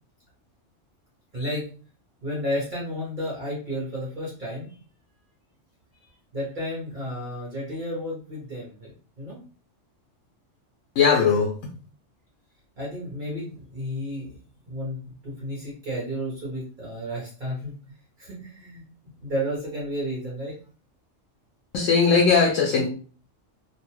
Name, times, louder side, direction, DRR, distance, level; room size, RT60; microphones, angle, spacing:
voice 1, 1.3-1.7 2.2-4.7 6.0-8.9 9.2-9.4 12.8-14.4 14.6-17.7 18.2-18.8 19.2-20.5, equal, 45° right, -6 dB, 1.0 m, -32 dB
voice 2, 11.0-11.5 21.7-22.9, left 5 dB, 90° left, -1 dB, 1.0 m, -19 dB
2.7 x 2.2 x 3.0 m, 0.41 s
omnidirectional pair, 1.3 m